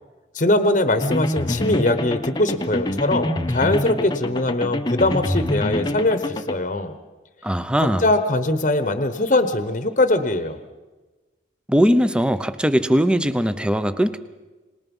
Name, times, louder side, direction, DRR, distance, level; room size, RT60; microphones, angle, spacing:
voice 1, 0.3-7.0 7.8-10.6, left 2 dB, 45° left, 9 dB, 1.1 m, -21 dB
sound 1, 1.0-6.5, left 1 dB, 25° left, 0.9 m, -26 dB
voice 2, 7.4-8.1 11.7-14.2, equal, 5° right, 12 dB, 0.8 m, -20 dB
25.0 x 20.0 x 5.5 m, 1.2 s
head